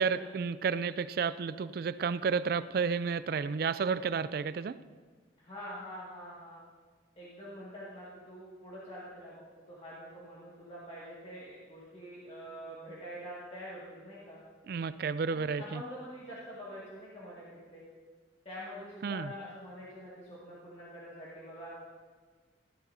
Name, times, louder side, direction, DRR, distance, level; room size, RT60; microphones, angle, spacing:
voice 1, 0.0-4.8 14.7-15.8 19.0-19.3, right 5 dB, 50° right, 15 dB, 0.3 m, -31 dB
voice 2, 5.4-6.6 7.2-9.3 9.7-14.4 15.3-17.8 18.5-21.7, equal, 35° left, -8 dB, 2.0 m, -45 dB
14.5 x 12.0 x 2.7 m, 1.5 s
head